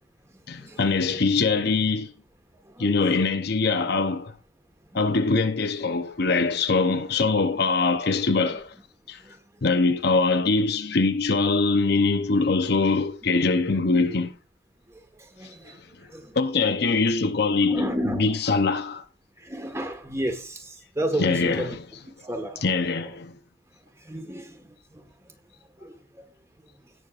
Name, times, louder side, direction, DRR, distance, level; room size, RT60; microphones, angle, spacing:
voice 1, 0.5-2.1 2.8-4.3 4.9-8.7 9.1-9.2 9.6-14.4 16.3-19.0 21.2-21.8 22.6-23.4, left 3 dB, 55° left, 0.8 m, -23 dB
voice 2, 15.2-15.8 16.1-16.4 17.6-18.3 19.4-21.8 22.2-22.6 24.0-24.7 24.9-25.1 25.8-25.9, right 1 dB, 15° right, 1.4 m, -31 dB
17.5 x 6.4 x 2.5 m
head